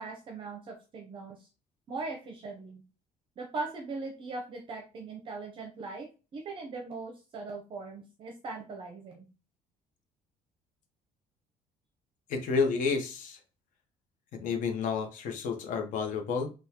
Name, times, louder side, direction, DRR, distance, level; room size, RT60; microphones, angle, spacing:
voice 1, 0.0-1.5 1.9-2.8 3.4-6.1 6.3-9.3, right 3 dB, 35° right, 2 dB, 0.6 m, -40 dB
voice 2, 12.3-13.4 14.4-16.5, left 5 dB, 60° left, 5 dB, 0.8 m, -30 dB
3.5 x 2.2 x 2.9 m, 0.33 s
cardioid pair, 170°, 15 cm